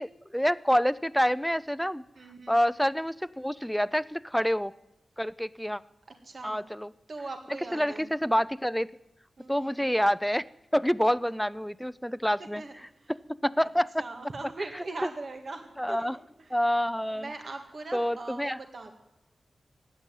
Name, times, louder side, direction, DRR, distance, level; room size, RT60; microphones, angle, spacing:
voice 1, 0.0-2.0 2.5-4.7 5.2-5.8 6.4-6.9 7.7-8.9 9.5-10.4 10.7-12.6 13.4-13.9 15.8-16.2 16.5-17.3 17.9-18.6, equal, 5° left, 18 dB, 0.6 m, -27 dB
voice 2, 2.2-2.6 6.2-6.6 7.1-8.1 9.4-9.8 12.4-13.1 14.0-16.7 17.1-18.9, right 3 dB, 60° right, 4 dB, 1.8 m, -41 dB
16.0 x 9.7 x 9.1 m, 0.89 s
cardioid pair, 45°, 0 cm